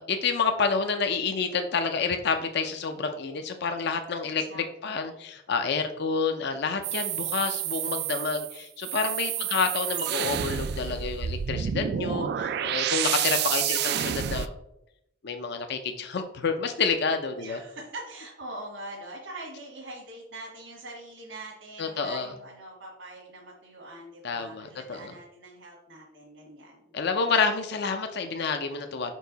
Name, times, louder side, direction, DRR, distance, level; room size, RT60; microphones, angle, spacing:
voice 1, 0.0-14.5 15.2-17.6 21.8-22.3 24.2-25.1 26.9-29.1, left 5 dB, 60° left, 6 dB, 0.5 m, -29 dB
voice 2, 4.2-5.3 9.4-9.6 17.3-27.0, right 1 dB, 70° right, -5 dB, 1.6 m, -43 dB
sound 1, 6.8-14.5, right 10 dB, 55° right, 0.3 m, -29 dB
5.4 x 4.6 x 4.0 m, 0.80 s
head